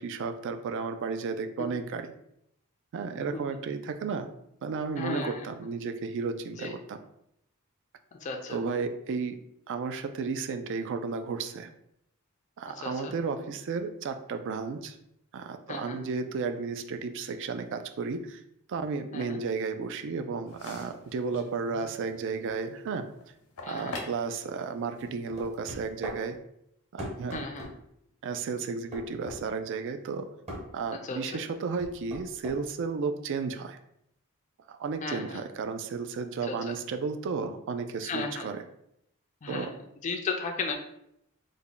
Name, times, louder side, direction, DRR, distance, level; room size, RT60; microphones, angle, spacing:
voice 1, 0.0-2.1 2.9-4.3 4.6-7.0 8.5-9.4 9.7-11.7 12.6-15.0 15.3-18.4 18.7-23.1 23.7-26.4 26.9-27.5 28.2-30.3 30.7-33.8 34.7-38.6 39.5-39.7, right 5 dB, 55° right, 8 dB, 0.3 m, -33 dB
voice 2, 5.0-5.5 6.6-6.7 8.1-8.6 12.7-13.1 15.7-16.0 19.1-19.4 23.6-24.0 27.3-27.7 31.0-31.4 35.0-35.4 36.4-36.7 38.0-38.5 39.4-40.7, left 4 dB, 35° left, 3 dB, 0.4 m, -35 dB
sound 1, 20.5-26.3, left 2 dB, 80° left, 0.7 m, -47 dB
sound 2, 25.4-26.2 27.0-27.7 28.9-29.4 30.5-30.7 31.8-32.6, equal, 30° right, 0.8 m, -38 dB
3.4 x 2.1 x 3.8 m, 0.77 s
head